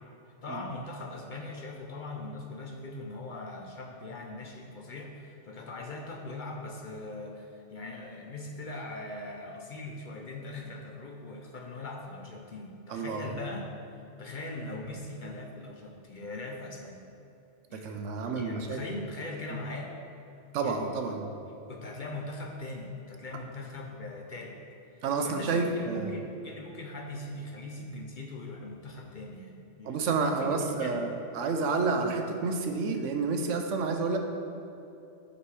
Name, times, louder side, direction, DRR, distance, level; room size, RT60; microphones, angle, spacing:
voice 1, 0.4-17.1 17.7-18.0 18.4-19.9 20.6-21.2 21.7-24.6 24.9-31.1, left 2 dB, 50° left, 1 dB, 0.7 m, -41 dB
voice 2, 12.9-13.3 17.7-18.8 20.5-21.3 25.0-26.1 29.9-34.2, right 4 dB, 85° right, 5 dB, 1.0 m, -29 dB
8.3 x 4.2 x 4.7 m, 2.8 s
omnidirectional pair, 1.2 m